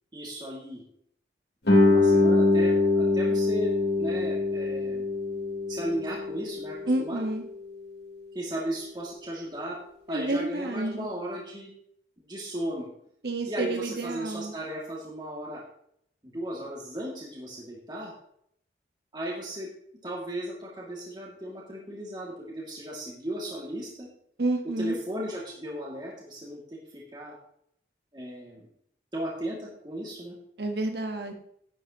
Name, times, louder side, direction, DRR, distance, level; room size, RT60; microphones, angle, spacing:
voice 1, 0.1-0.8 1.8-5.1 5.7-7.2 8.3-9.8 10.1-11.7 12.2-12.9 13.5-15.6 16.2-18.1 19.1-19.7 20.0-24.1 24.8-27.3 28.1-28.7 29.1-30.4, right 1 dB, 25° right, -4 dB, 2.2 m, -36 dB
Guitar, 1.6-7.0, left 2 dB, 75° left, 3.5 m, -23 dB
voice 2, 6.9-7.4 10.1-11.1 13.2-14.5 24.4-24.9 30.6-31.3, right 2 dB, 65° right, 5 dB, 1.3 m, -29 dB
10.5 x 9.4 x 2.9 m, 0.69 s
head